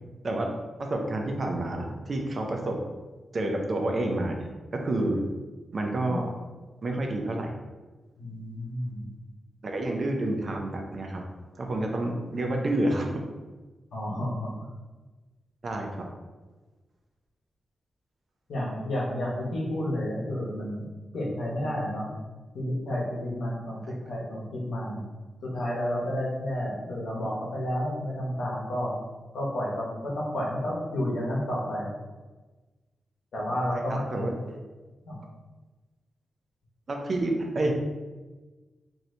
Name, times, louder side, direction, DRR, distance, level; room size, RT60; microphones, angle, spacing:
voice 1, 0.2-2.8 3.3-5.2 5.7-6.3 6.8-7.5 9.6-11.2 11.6-13.2 15.6-16.1 23.9-24.0 33.9-34.3 36.9-37.7, right 1 dB, 40° right, 2 dB, 0.4 m, -29 dB
voice 2, 8.2-9.1 13.9-14.7 18.5-20.9 21.1-22.1 22.5-25.0 25.4-29.0 29.3-31.9 33.3-34.6 35.0-35.2, left 1 dB, 80° left, -4 dB, 0.9 m, -31 dB
2.7 x 2.7 x 3.2 m, 1.2 s
wide cardioid pair, 150°, 0 cm